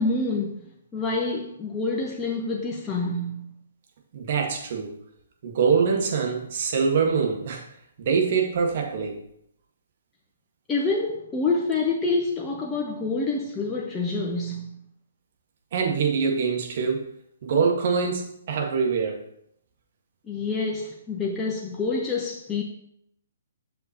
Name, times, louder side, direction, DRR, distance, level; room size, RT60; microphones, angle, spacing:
voice 1, 0.0-3.5 10.7-14.7 20.3-22.6, left 3 dB, 15° left, 0.8 m, -27 dB
voice 2, 4.1-4.9 5.4-7.7 8.0-9.2 15.7-17.1 17.4-19.2, right 5 dB, 50° right, 1.6 m, -24 dB
7.5 x 6.4 x 2.9 m
figure-of-eight pair, 130°, 0 cm